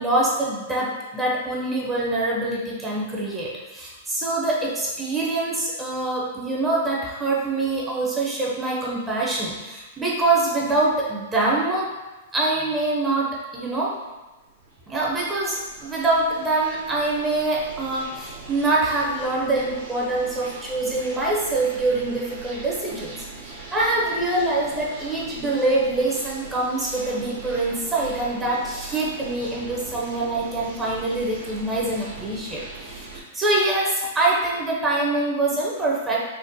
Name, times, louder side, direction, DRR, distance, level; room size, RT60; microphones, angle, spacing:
voice 1, 0.0-11.9 12.3-13.9 14.9-33.1 33.3-36.3, right 2 dB, 15° right, -4 dB, 0.4 m, -24 dB
sound 1, 14.1-33.2, right 3 dB, 70° right, 0.7 m, -41 dB
3.6 x 2.0 x 2.6 m, 1.1 s
hypercardioid pair, 135°, 0 cm